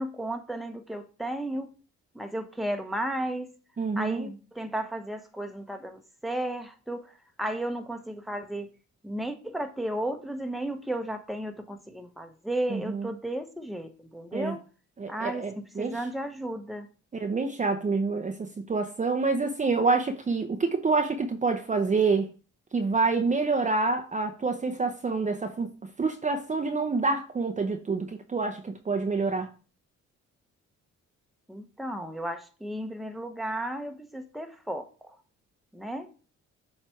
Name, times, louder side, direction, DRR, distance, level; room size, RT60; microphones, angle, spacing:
voice 1, 0.0-1.7 2.1-3.5 4.0-8.7 9.0-14.6 15.1-16.9 31.5-34.9 35.7-36.1, right 1 dB, ahead, 0.9 m, -34 dB
voice 2, 3.8-4.3 12.7-13.1 14.3-14.6 15.0-16.0 17.1-22.3 22.7-25.7 26.0-29.5, right 4 dB, 25° right, 0.7 m, -27 dB
7.6 x 3.3 x 4.5 m
cardioid pair, 90°, 30 cm